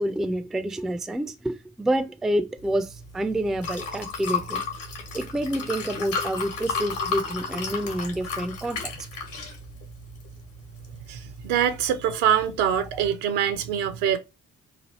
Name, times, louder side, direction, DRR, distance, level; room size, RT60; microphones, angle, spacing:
voice 1, 0.0-4.6 5.1-8.9 12.9-13.0, right 1 dB, ahead, 0.3 m, -28 dB
Liquid, 2.6-13.1, left 4 dB, 75° left, 1.1 m, -34 dB
voice 2, 11.1-14.2, right 9 dB, 70° right, 0.6 m, -24 dB
3.2 x 2.3 x 2.9 m
figure-of-eight pair, 40°, 37 cm